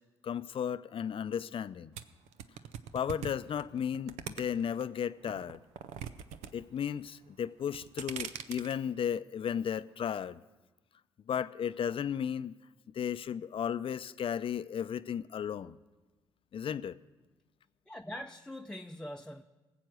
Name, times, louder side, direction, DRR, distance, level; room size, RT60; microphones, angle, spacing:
voice 1, 0.2-1.9 2.9-5.6 6.5-10.4 11.3-12.5 12.9-15.8 16.5-17.0, left 8 dB, 50° left, 0.5 m, -34 dB
sound 1, 2.0-4.8 5.2-6.5 6.8-7.2 7.6-8.7, right 9 dB, 75° right, 0.6 m, -41 dB
voice 2, 17.9-19.4, left 1 dB, 5° left, 0.7 m, -43 dB
19.0 x 7.8 x 6.4 m
hypercardioid pair, 45°, 11 cm